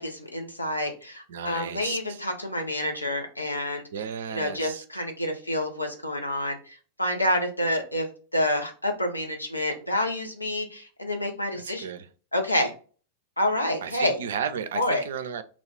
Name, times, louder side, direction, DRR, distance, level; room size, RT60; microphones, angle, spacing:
voice 1, 0.0-3.8 4.3-8.1 8.3-11.9 12.3-12.7 13.4-14.2 14.7-15.0, left 1 dB, 85° left, 0.6 m, -28 dB
voice 2, 1.3-2.2 3.9-4.8 11.5-12.1 13.8-15.4, right 7 dB, 60° right, 0.4 m, -34 dB
2.4 x 2.3 x 3.4 m
figure-of-eight pair, 90°, 0 cm